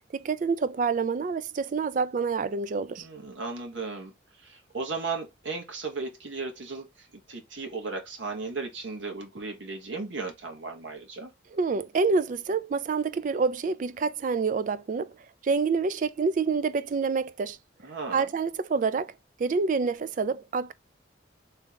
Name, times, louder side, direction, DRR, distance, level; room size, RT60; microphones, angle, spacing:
voice 1, 0.1-3.1 11.5-15.1 15.4-17.6 18.1-19.1 19.4-20.7, right 4 dB, 40° right, 0.3 m, -27 dB
voice 2, 3.0-4.1 4.4-11.3 17.8-18.3, right 4 dB, 75° right, 1.1 m, -36 dB
3.4 x 3.4 x 2.9 m
head